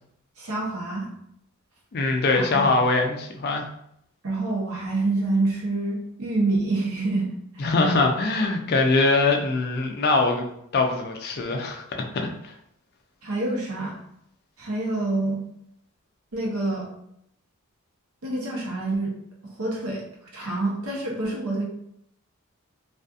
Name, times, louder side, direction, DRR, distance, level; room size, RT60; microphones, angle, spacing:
voice 1, 0.4-1.1 2.4-2.7 4.2-7.3 7.5-7.7 13.2-14.0 14.6-15.4 16.3-16.9 18.2-19.1 19.6-20.0 20.3-21.6, right 2 dB, 80° right, -3 dB, 0.8 m, -27 dB
voice 2, 1.9-3.7 7.6-10.4 10.7-11.8 12.1-12.5, left 3 dB, 45° left, 3 dB, 0.4 m, -22 dB
2.6 x 2.4 x 2.3 m, 0.74 s
head